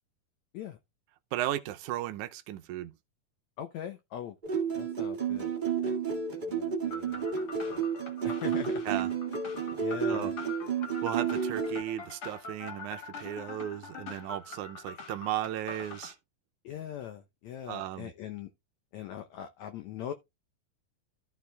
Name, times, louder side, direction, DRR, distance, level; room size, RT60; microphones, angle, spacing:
voice 1, 1.3-2.9 8.9-9.1 10.1-10.3 11.0-16.2 17.7-18.1, right 13 dB, 75° right, 1.8 m, -35 dB
voice 2, 3.6-4.4 4.8-5.5 5.8-7.3 7.6-7.8 8.2-8.8 9.8-10.4 16.6-18.5 18.9-20.1, left 10 dB, 75° left, 1.7 m, -41 dB
sound 1, 4.4-11.8, right 6 dB, 30° right, 0.8 m, -31 dB
sound 2, 6.9-16.1, left 4 dB, 50° left, 1.9 m, -44 dB
14.0 x 4.6 x 3.4 m
omnidirectional pair, 4.3 m